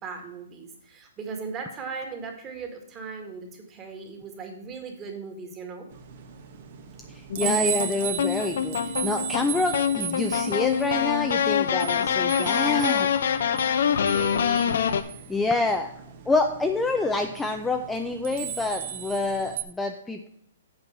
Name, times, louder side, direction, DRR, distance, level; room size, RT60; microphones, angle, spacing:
voice 1, 0.0-5.9 14.0-15.2, right 5 dB, 20° right, 3 dB, 1.8 m, -38 dB
sound 1, 5.9-19.6, right 9 dB, 55° right, 1.1 m, -36 dB
sound 2, 7.3-15.0, left 7 dB, 70° left, 0.7 m, -25 dB
voice 2, 7.4-8.8 9.0-13.1 15.3-15.9 16.3-20.3, left 3 dB, 5° left, 4 dB, 0.5 m, -27 dB
8.0 x 4.5 x 6.8 m, 0.66 s
hypercardioid pair, 145°, 0 cm